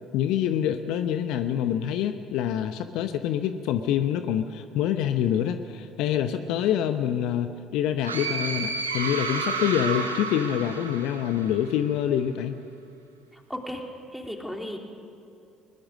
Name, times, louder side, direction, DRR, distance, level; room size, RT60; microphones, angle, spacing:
voice 1, 0.1-12.5, left 10 dB, 60° left, 9 dB, 0.8 m, -26 dB
sound 1, 8.0-11.7, right 4 dB, 85° right, 1.4 m, -31 dB
voice 2, 13.3-13.8 14.1-14.8, left 1 dB, 5° left, 1 dB, 3.5 m, -35 dB
21.5 x 20.5 x 6.5 m, 2.6 s
figure-of-eight pair, 55°, 0 cm